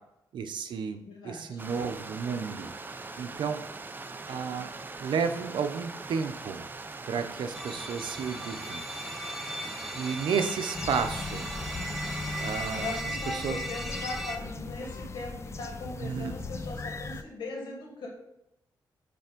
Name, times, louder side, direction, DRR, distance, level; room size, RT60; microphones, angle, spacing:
voice 1, 0.3-2.7 3.2-3.6 4.2-4.7 5.0-6.7 7.1-8.8 9.9-11.5 12.4-12.9 13.3-13.6 16.0-16.3, right 6 dB, 75° right, 7 dB, 0.8 m, -32 dB
voice 2, 1.0-1.6 12.2-12.4 12.8-18.1, left 2 dB, 80° left, -1 dB, 2.4 m, -39 dB
Stream, 1.6-13.0, right 3 dB, 25° right, 0.6 m, -41 dB
sound 1, 7.5-14.4, equal, ahead, 0.8 m, -38 dB
sound 2, 10.7-17.2, left 3 dB, 35° left, 0.6 m, -38 dB
10.0 x 3.5 x 5.1 m, 0.82 s
cardioid pair, 95°, 8 cm